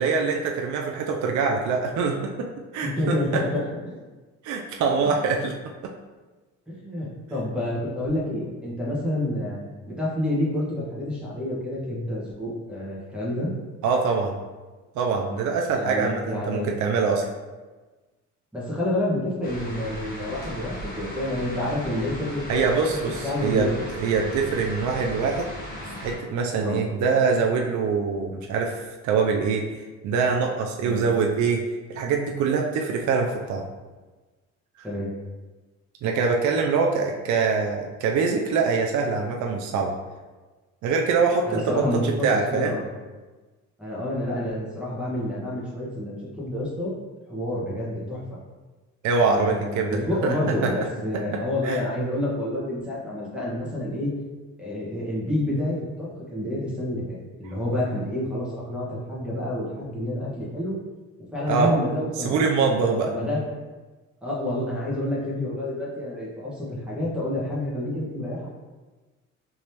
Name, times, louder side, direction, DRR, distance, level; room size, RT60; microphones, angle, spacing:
voice 1, 0.0-3.4 4.4-5.5 5.8-5.9 13.8-14.4 15.0-17.3 22.5-23.7 24.0-25.5 26.0-29.7 30.0-31.6 31.9-33.7 36.0-39.9 40.8-42.8 49.0-50.3 50.6-50.7 51.1-51.8 61.5-61.7 62.2-63.1, right 5 dB, 70° right, 1 dB, 0.5 m, -24 dB
voice 2, 2.8-4.0 5.0-5.1 6.7-9.6 9.9-13.5 15.8-16.7 18.5-23.0 23.2-23.7 26.6-26.8 30.8-31.0 34.8-35.1 41.4-42.9 43.8-46.9 47.3-48.2 49.2-54.1 54.6-60.8 61.3-62.4 63.0-63.4 64.2-68.5, left 1 dB, 5° right, -7 dB, 1.2 m, -28 dB
sound 1, 19.4-26.2, left 1 dB, 30° left, 1.1 m, -37 dB
3.4 x 3.0 x 2.8 m, 1.3 s
cardioid pair, 90°, 30 cm